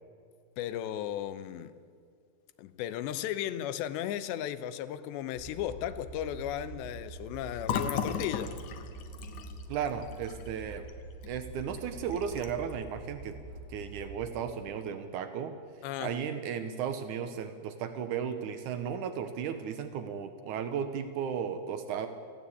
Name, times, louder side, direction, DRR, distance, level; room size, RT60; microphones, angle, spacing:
voice 1, 0.6-1.8 2.6-8.6 15.8-16.2, left 11 dB, 85° left, 3.0 m, -35 dB
sound 1, 5.3-14.3, right 2 dB, 25° right, 3.7 m, -45 dB
Fill (with liquid), 7.6-11.3 11.6-11.8 12.1-12.7, left 7 dB, 65° left, 2.0 m, -36 dB
voice 2, 9.7-10.8 11.3-13.3 13.7-15.5 16.0-22.1, right 7 dB, 90° right, 1.7 m, -35 dB
19.5 x 15.5 x 8.6 m
omnidirectional pair, 5.0 m